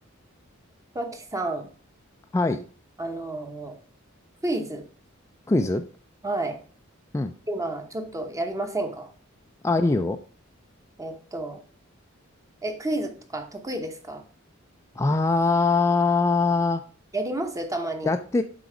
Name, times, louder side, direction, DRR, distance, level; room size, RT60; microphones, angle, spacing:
voice 1, 0.9-1.7 3.0-3.8 4.4-4.9 6.2-6.6 7.5-9.1 11.0-11.6 12.6-14.2 17.1-18.1, right 2 dB, 15° right, 6 dB, 0.8 m, -30 dB
voice 2, 2.3-2.6 5.5-5.8 7.1-7.3 9.6-10.2 15.0-16.8 18.0-18.4, left 3 dB, 15° left, 6 dB, 0.3 m, -22 dB
7.8 x 4.1 x 4.9 m, 0.41 s
head